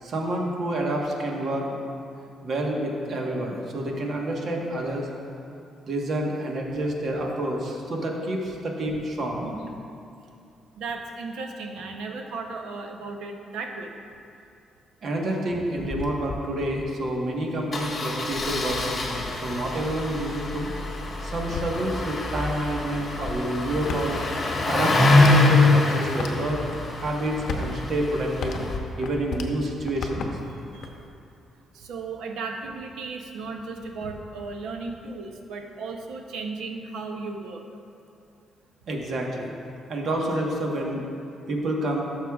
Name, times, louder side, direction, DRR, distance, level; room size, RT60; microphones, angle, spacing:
voice 1, 0.0-1.8 2.4-5.1 5.8-9.5 15.0-20.7 21.2-24.2 24.7-26.6 27.0-28.6 29.0-30.3 38.9-39.5 39.9-41.0 41.5-42.0, right 1 dB, 55° right, 0 dB, 1.2 m, -28 dB
voice 2, 9.4-9.7 10.8-13.9 30.5-30.9 31.7-37.7, right 4 dB, 85° right, 3 dB, 0.7 m, -35 dB
Engine starting, 15.8-16.0 16.3-16.4 16.6-16.8 17.7-28.8, left 2 dB, 35° left, 1.3 m, -24 dB
sound 1, 19.2-22.1 22.8-22.9 23.5-25.7 26.1-26.8 27.2-29.6 29.8-31.1, left 3 dB, 70° left, 0.7 m, -36 dB
12.0 x 6.4 x 2.4 m, 2.6 s
cardioid pair, 90°, 0 cm